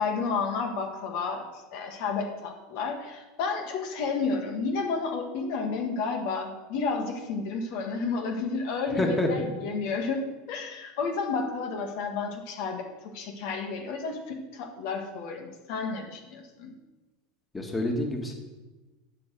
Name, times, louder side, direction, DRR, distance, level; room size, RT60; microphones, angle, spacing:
voice 1, 0.0-1.4 1.7-12.9 13.1-16.7, left 4 dB, 65° left, 3 dB, 1.6 m, -31 dB
voice 2, 8.9-9.3 17.5-18.3, left 1 dB, 15° left, 2 dB, 1.9 m, -27 dB
12.0 x 4.6 x 7.7 m, 1.2 s
supercardioid pair, 115°, 0 cm